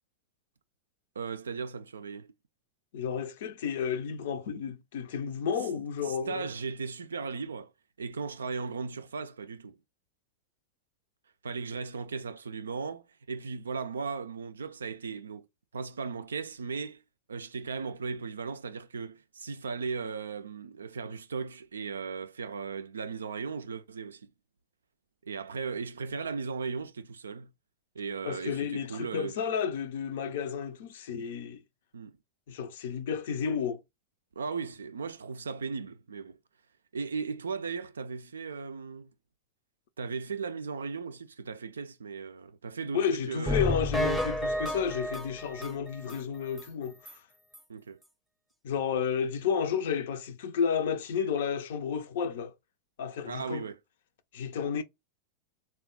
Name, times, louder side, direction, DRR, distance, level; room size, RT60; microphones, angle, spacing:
voice 1, 1.2-2.3 6.1-7.7 8.0-9.8 11.4-15.5 15.7-17.0 17.3-24.3 25.2-27.5 27.9-29.4 31.9-32.2 34.4-36.4 36.9-39.1 40.0-43.7 47.7-48.0 53.2-53.8, right 5 dB, 70° right, 0.3 m, -37 dB
voice 2, 2.9-6.5 28.2-31.6 32.5-33.8 42.9-47.2 48.6-52.5 53.0-53.6 54.3-54.8, left 7 dB, 55° left, 0.5 m, -32 dB
sound 1, 43.5-46.2 46.6-46.7 47.1-47.2 47.5-47.6, left 1 dB, ahead, 0.6 m, -31 dB
3.5 x 2.2 x 3.7 m
figure-of-eight pair, 90°, 0 cm